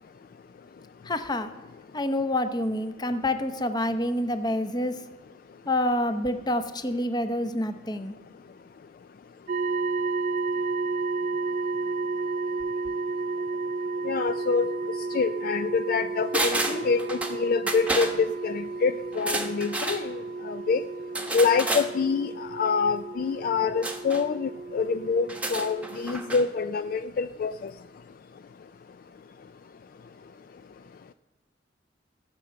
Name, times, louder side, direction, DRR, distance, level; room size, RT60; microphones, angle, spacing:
voice 1, 1.0-1.5 1.9-5.0 5.7-8.1, left 1 dB, 20° left, 9 dB, 0.7 m, -27 dB
sound 1, 9.5-26.4, right 3 dB, 45° right, 0.4 m, -32 dB
voice 2, 14.0-14.7 15.1-20.8 21.3-27.7, left 5 dB, 50° left, 11 dB, 0.3 m, -26 dB
sound 2, 16.3-17.4 17.7-18.1 19.1-20.0 21.1-21.9 23.8-24.2 25.2-26.4 26.7-26.8, right 2 dB, 5° right, 1.0 m, -30 dB
16.0 x 5.9 x 7.5 m, 1.2 s
head